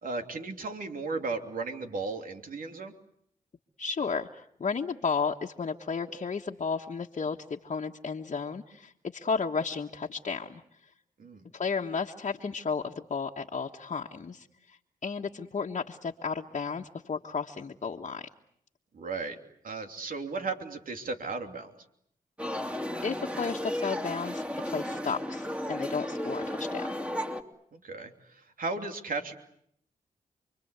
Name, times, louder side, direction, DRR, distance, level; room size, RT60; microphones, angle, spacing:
voice 1, 0.0-2.9 11.2-11.4 18.9-19.4 19.6-21.7 27.7-29.4, right 3 dB, 70° right, 5 dB, 3.0 m, -35 dB
voice 2, 3.8-10.9 11.5-18.3 23.0-26.9, left 5 dB, 50° left, 1 dB, 1.5 m, -33 dB
sound 1, 22.4-27.4, left 1 dB, 10° right, 3.1 m, -34 dB
29.0 x 23.0 x 8.2 m, 0.71 s
cardioid pair, 55°, 15 cm